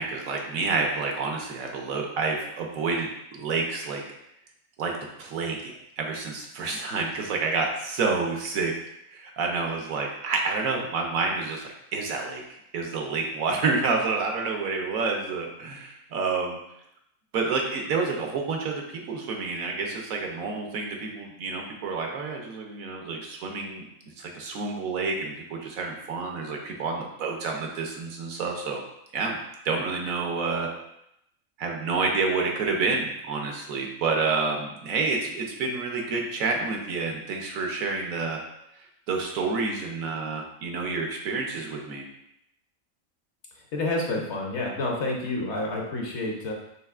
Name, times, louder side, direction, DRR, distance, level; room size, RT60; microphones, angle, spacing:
voice 1, 0.0-4.0 4.8-4.9 5.2-8.7 9.1-16.6 17.3-23.8 24.2-28.8 29.1-29.4 29.6-30.7 31.6-38.4 38.8-42.0, right 4 dB, 80° right, 1 dB, 1.2 m, -29 dB
voice 2, 43.5-46.5, left 2 dB, 60° left, 0 dB, 1.0 m, -29 dB
5.5 x 3.5 x 2.4 m, 0.80 s
omnidirectional pair, 1.5 m